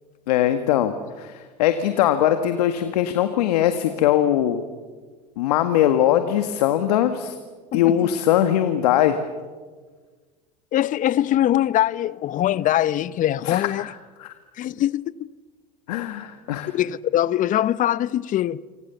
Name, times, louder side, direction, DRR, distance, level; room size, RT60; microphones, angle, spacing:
voice 1, 0.3-4.6 5.4-7.4 7.7-9.2 13.4-13.9 14.2-14.3 15.9-16.7, left 11 dB, 75° left, 1.8 m, -21 dB
voice 2, 7.7-8.1 10.7-13.9 14.6-15.3 16.7-18.6, left 12 dB, 40° left, 0.8 m, -22 dB
27.5 x 26.0 x 7.1 m
hypercardioid pair, 90°, 20 cm